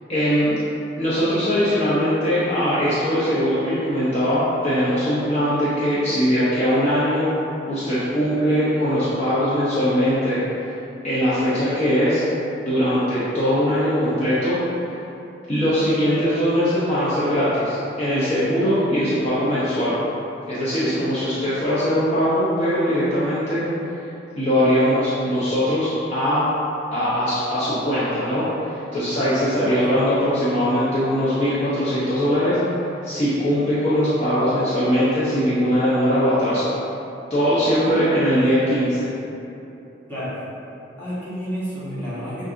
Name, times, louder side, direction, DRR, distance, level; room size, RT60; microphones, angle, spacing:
voice 1, 0.1-0.5 1.0-7.3 7.7-10.4 11.0-12.2 12.6-14.6 15.5-19.9 20.5-23.7 24.4-26.4 26.9-32.6 33.0-36.7 37.3-39.1, equal, 35° left, -11 dB, 0.7 m, -21 dB
voice 2, 29.3-29.7 37.8-38.3 40.1-40.5 41.0-42.5, equal, 10° left, -12 dB, 1.2 m, -31 dB
6.3 x 2.6 x 2.5 m, 2.8 s
head